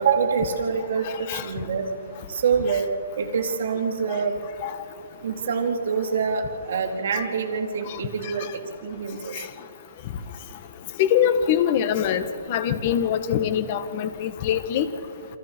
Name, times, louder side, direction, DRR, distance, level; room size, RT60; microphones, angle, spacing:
voice 1, 0.0-1.9 2.3-2.9 3.2-4.3 5.2-8.5 8.8-9.3, right 6 dB, 60° right, 0 dB, 3.7 m, -25 dB
voice 2, 11.0-12.2 12.5-14.9, left 9 dB, 35° left, 10 dB, 1.5 m, -23 dB
28.5 x 27.0 x 4.6 m, 2.5 s
hypercardioid pair, 155°, 0 cm